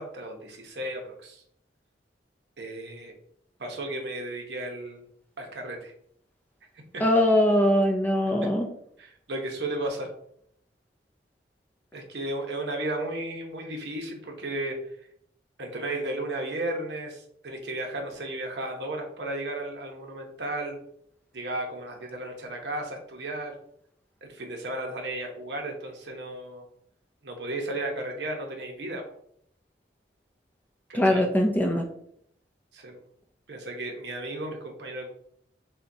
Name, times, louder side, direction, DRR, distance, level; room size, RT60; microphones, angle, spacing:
voice 1, 0.0-1.4 2.6-3.1 3.6-5.0 5.4-5.9 8.4-8.5 9.0-10.1 11.9-14.7 15.6-20.8 21.3-23.5 24.2-26.6 27.2-29.0 30.9-31.3 32.7-33.0 33.5-35.1, right 1 dB, 70° right, 2 dB, 0.9 m, -34 dB
voice 2, 7.0-8.7 30.9-31.9, left 1 dB, 10° left, 3 dB, 0.5 m, -22 dB
6.7 x 2.2 x 2.7 m, 0.69 s
head